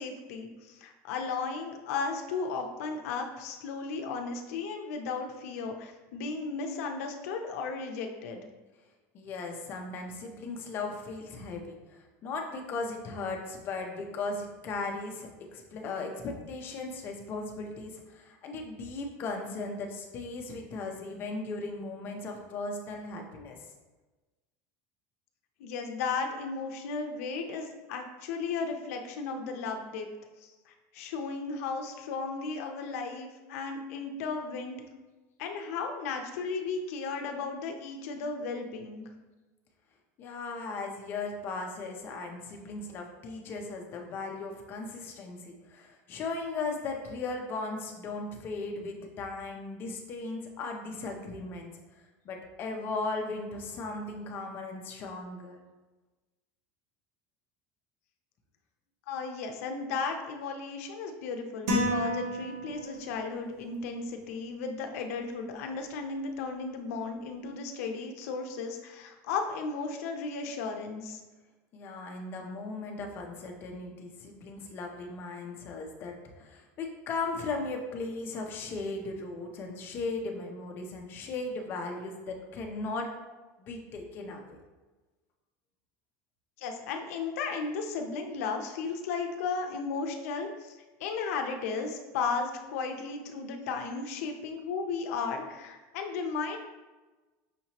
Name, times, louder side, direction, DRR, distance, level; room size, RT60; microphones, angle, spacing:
voice 1, 0.0-8.4 25.6-30.1 30.4-34.8 35.4-39.1 59.1-71.2 86.6-90.7 91.0-96.6, left 4 dB, 80° left, 4 dB, 0.6 m, -35 dB
voice 2, 9.1-23.6 40.2-51.7 52.2-55.6 71.7-83.1 83.6-84.6, left 3 dB, 30° left, 2 dB, 0.5 m, -37 dB
sound 1, 61.7-63.2, equal, 85° right, 1.1 m, -30 dB
5.7 x 2.8 x 2.9 m, 1.2 s
cardioid pair, 180°, 8 cm